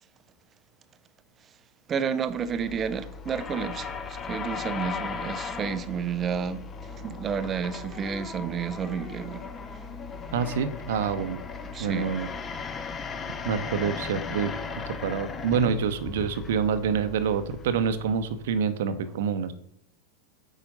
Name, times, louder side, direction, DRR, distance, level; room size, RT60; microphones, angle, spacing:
voice 1, 1.9-9.5 9.8-9.9 11.7-12.2, right 7 dB, 25° right, 0.6 m, -31 dB
sound 1, 2.3-18.6, left 5 dB, 20° left, 0.7 m, -37 dB
voice 2, 10.3-11.4 11.8-12.3 13.4-14.5 14.9-19.5, right 7 dB, 55° right, 0.8 m, -27 dB
8.7 x 5.0 x 5.3 m
figure-of-eight pair, 90°, 0 cm